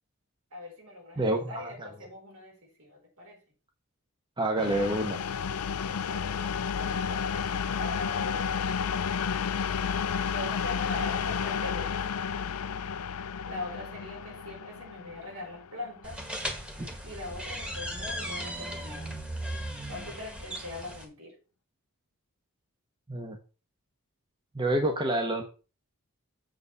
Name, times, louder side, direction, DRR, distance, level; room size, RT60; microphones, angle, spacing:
voice 1, 0.5-3.4 5.7-7.5 7.8-8.7 10.3-12.1 13.1-16.3 17.0-19.1 19.9-21.3, left 2 dB, 70° right, 4.4 m, -42 dB
voice 2, 1.2-1.9 4.4-5.2 23.1-23.4 24.5-25.4, right 1 dB, 20° right, 0.9 m, -28 dB
sound 1, 4.6-16.2, left 6 dB, 80° left, 0.5 m, -31 dB
sound 2, 16.0-21.0, equal, 5° right, 1.6 m, -37 dB
7.8 x 4.0 x 6.8 m
head